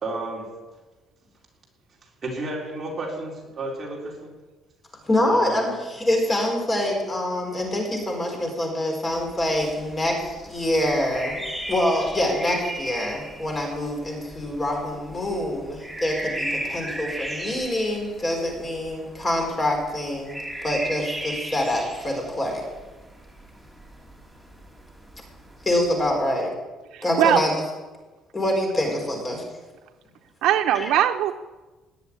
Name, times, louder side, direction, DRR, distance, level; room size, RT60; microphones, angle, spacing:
voice 1, 0.0-0.5 2.2-4.3 5.2-5.6, right 2 dB, 25° right, -3 dB, 4.5 m, -32 dB
voice 2, 5.1-20.4 20.6-22.6 25.6-26.5 27.0-27.5 28.3-29.4 30.7-30.9, left 1 dB, 20° left, 1 dB, 4.2 m, -25 dB
sound 1, 9.1-26.3, right 1 dB, ahead, 2.4 m, -37 dB
voice 3, 26.9-27.4 30.4-31.3, right 11 dB, 75° right, 8 dB, 0.7 m, -20 dB
19.0 x 7.3 x 9.8 m, 1.2 s
cardioid pair, 175°, 0 cm